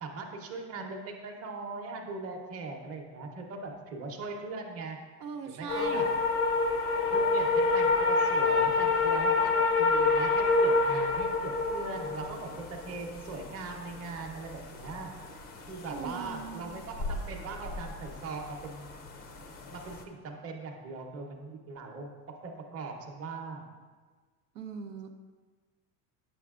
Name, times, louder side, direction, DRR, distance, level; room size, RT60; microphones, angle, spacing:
voice 1, 0.0-5.0 5.5-6.1 7.1-15.1 15.7-18.9 19.7-23.7, right 3 dB, 30° right, 2 dB, 0.8 m, -40 dB
voice 2, 5.2-6.1 15.9-16.8 24.5-25.1, right 6 dB, 85° right, 5 dB, 0.7 m, -40 dB
sound 1, 5.7-20.0, left 3 dB, 20° left, 0.4 m, -28 dB
7.9 x 6.0 x 2.4 m, 1.4 s
supercardioid pair, 120°, 48 cm